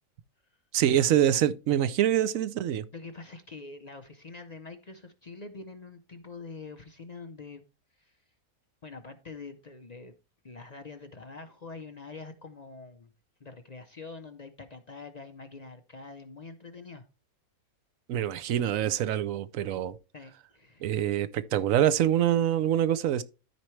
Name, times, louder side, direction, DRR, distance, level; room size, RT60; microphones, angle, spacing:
voice 1, 0.7-2.8 18.1-20.0 20.8-23.2, right 11 dB, 70° right, 1.0 m, -25 dB
voice 2, 2.9-7.6 8.0-8.2 8.8-10.1 10.4-13.1 13.4-17.0 20.1-20.9, left 4 dB, 45° left, 0.5 m, -45 dB
13.5 x 4.5 x 3.1 m
omnidirectional pair, 1.6 m